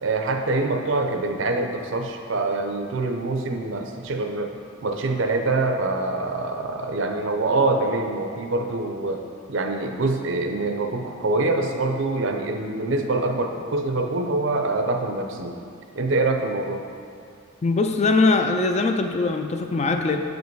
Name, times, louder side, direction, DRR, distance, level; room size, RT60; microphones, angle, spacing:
voice 1, 0.0-4.6 4.8-9.2 9.5-15.6 15.9-16.8, right 2 dB, 65° right, 4 dB, 0.6 m, -25 dB
voice 2, 17.6-20.2, left 3 dB, 35° left, 6 dB, 0.4 m, -21 dB
7.4 x 5.2 x 4.6 m, 2.3 s
head